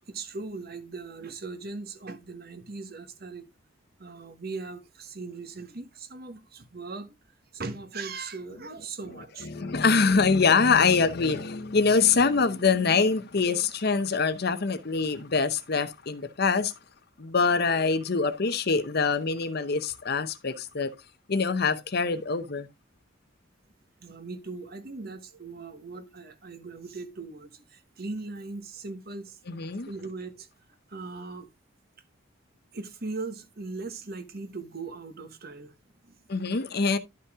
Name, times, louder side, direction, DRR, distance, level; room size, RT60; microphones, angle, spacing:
voice 1, 0.1-3.5 4.0-7.2 7.5-9.7 24.0-29.4 29.8-30.5 30.9-31.5 32.7-35.7 36.0-36.2, right 3 dB, 45° right, 1.2 m, -39 dB
voice 2, 9.4-16.7 17.2-20.9 21.3-22.7 29.5-29.9 36.3-37.0, left 4 dB, 50° left, 0.7 m, -24 dB
11.5 x 5.5 x 3.6 m
head